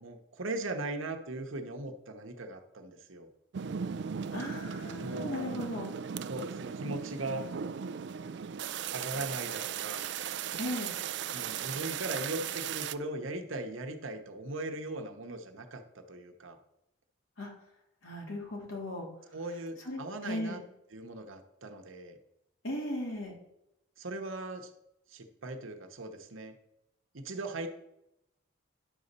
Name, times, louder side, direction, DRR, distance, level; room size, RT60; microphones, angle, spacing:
voice 1, 0.0-3.3 5.0-5.6 6.2-7.5 8.9-10.0 11.3-16.6 19.3-20.6 20.9-22.2 24.0-24.7 25.1-26.5 27.1-27.7, right 2 dB, 75° right, 5 dB, 1.0 m, -39 dB
sound 1, 3.5-12.9, right 7 dB, 55° right, 0.3 m, -37 dB
voice 2, 4.3-5.9 10.6-10.9 17.4-17.5 18.0-19.1 19.8-20.6 22.6-23.3, left 1 dB, 80° left, -1 dB, 2.7 m, -37 dB
10.5 x 4.1 x 6.7 m, 0.83 s
head